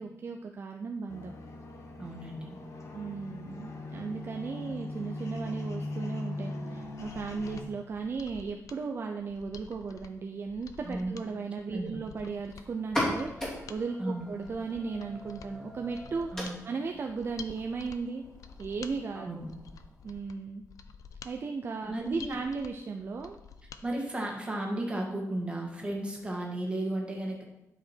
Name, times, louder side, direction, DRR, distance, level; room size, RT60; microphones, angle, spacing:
voice 1, 0.0-1.3 2.9-16.3 16.6-18.2 18.6-19.3 20.0-20.6 21.2-23.4, right 4 dB, 45° right, 3 dB, 0.5 m, -36 dB
sound 1, 1.1-7.6, left 2 dB, 65° left, 1.3 m, -40 dB
voice 2, 2.0-2.6 10.8-11.1 11.7-12.0 14.0-14.3 16.3-16.6 19.1-19.5 21.9-22.4 23.8-27.4, right 1 dB, 20° right, -1 dB, 1.8 m, -34 dB
Mechanisms, 6.8-23.8 24.2-24.3, left 6 dB, 85° left, 0.6 m, -50 dB
sound 2, 12.8-20.2, equal, 10° left, 2.7 m, -39 dB
11.5 x 5.1 x 4.4 m, 0.90 s
wide cardioid pair, 165°, 6 cm